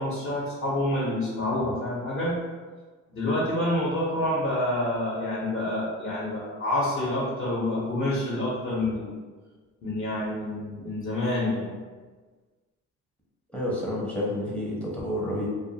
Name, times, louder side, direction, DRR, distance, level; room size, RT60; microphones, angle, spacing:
voice 1, 0.0-2.3 3.1-9.2 9.8-11.7, left 1 dB, 40° left, -6 dB, 0.8 m, -28 dB
voice 2, 13.5-15.5, left 1 dB, 5° left, -4 dB, 0.7 m, -29 dB
2.4 x 2.2 x 2.7 m, 1.4 s
cardioid pair, 90°, 30 cm